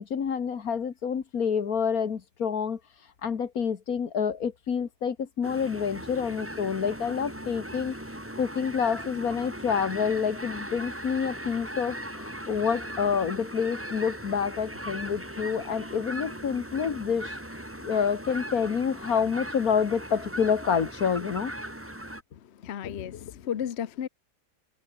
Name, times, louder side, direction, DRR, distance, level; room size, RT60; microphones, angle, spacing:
voice 1, 0.0-2.8 3.2-7.9 8.4-17.4 17.8-21.6, left 6 dB, 75° left, 2.0 m, -28 dB
sound 1, 5.4-22.2, right 1 dB, 10° right, 3.2 m, -39 dB
voice 2, 22.3-24.1, left 9 dB, 55° left, 1.0 m, -34 dB
omnidirectional pair, 1.5 m